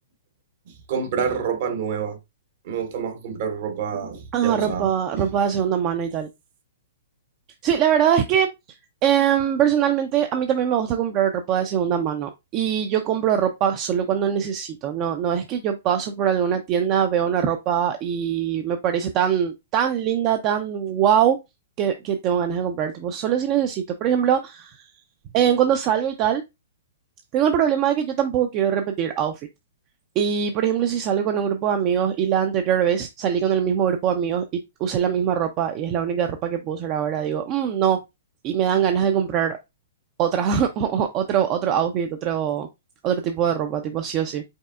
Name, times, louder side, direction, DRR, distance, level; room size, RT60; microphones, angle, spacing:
voice 1, 0.7-2.2 2.6-5.4, right 6 dB, 55° right, 1.1 m, -28 dB
voice 2, 4.3-6.3 7.6-8.5 9.0-21.4 21.8-24.8 25.3-26.4 27.3-29.4 30.2-34.4 34.8-38.0 38.4-39.6 40.2-42.7 43.0-44.4, right 9 dB, 35° right, 0.5 m, -22 dB
5.3 x 3.3 x 2.4 m
hypercardioid pair, 130°, 0 cm